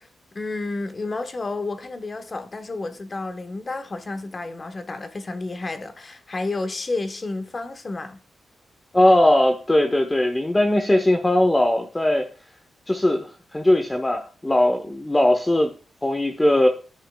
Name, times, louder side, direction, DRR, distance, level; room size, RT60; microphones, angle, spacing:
voice 1, 0.0-8.2, left 3 dB, 35° left, 1.1 m, -31 dB
voice 2, 8.9-12.3 12.9-15.7 16.0-16.7, left 1 dB, 15° left, 0.9 m, -19 dB
10.0 x 5.7 x 2.2 m
cardioid pair, 85°, 0 cm